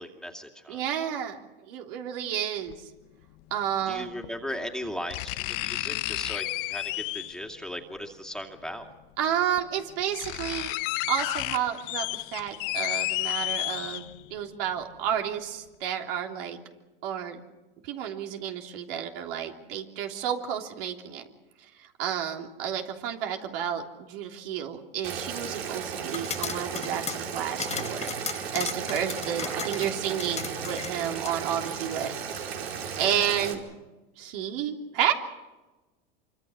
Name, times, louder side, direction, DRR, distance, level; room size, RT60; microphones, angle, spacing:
voice 1, 0.0-0.8 3.9-8.9 29.2-29.7, equal, ahead, 3 dB, 2.7 m, -38 dB
voice 2, 0.7-1.4 1.7-2.8 3.5-4.1 9.2-10.7 11.1-16.6 17.0-17.4 17.8-21.2 22.0-32.4 33.0-33.6 34.2-35.1, right 9 dB, 65° right, 3 dB, 3.3 m, -31 dB
sound 1, 2.7-2.8 4.2-4.3 5.1-7.5 8.8-8.9 9.6-9.7 9.9-14.3 14.8-14.9, left 21 dB, 60° left, 0.9 m, -31 dB
Boiling, 25.0-33.5, right 7 dB, 85° right, 4.5 m, -35 dB
sound 2, 26.0-31.4, left 7 dB, 20° left, 1.2 m, -37 dB
26.5 x 25.0 x 6.2 m, 1.1 s
hypercardioid pair, 110°, 30 cm